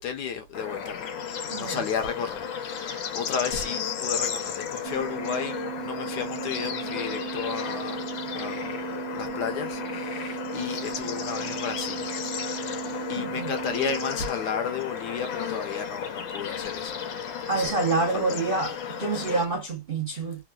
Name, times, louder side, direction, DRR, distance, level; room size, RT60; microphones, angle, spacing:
voice 1, 0.0-8.0 8.3-8.7 9.1-12.2 12.5-12.7 13.1-17.0 17.3-17.8 18.1-18.4 18.6-18.7 19.1-19.4, left 6 dB, 70° left, 1.1 m, -33 dB
Bird / Insect / Frog, 0.5-19.4, left 7 dB, 85° left, 1.5 m, -34 dB
voice 2, 1.5-1.8 13.2-13.5 17.5-20.4, right 3 dB, 55° right, 0.6 m, -27 dB
sound 1, 4.8-14.2, right 15 dB, 80° right, 1.3 m, -37 dB
3.5 x 2.4 x 2.2 m
omnidirectional pair, 2.1 m